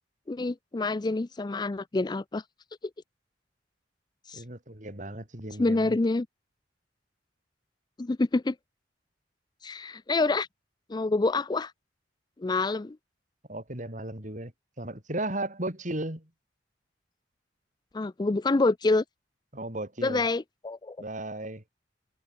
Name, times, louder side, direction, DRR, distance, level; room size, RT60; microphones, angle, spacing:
voice 1, 0.3-2.4 4.3-4.4 5.6-6.3 8.0-8.6 9.6-10.5 10.9-11.7 12.4-13.0 17.9-19.0 20.0-21.0, left 3 dB, 25° left, 0.4 m, -27 dB
voice 2, 4.3-6.0 13.5-14.5 14.8-16.3 19.5-20.2 21.0-21.6, right 1 dB, 45° right, 5.1 m, -35 dB
head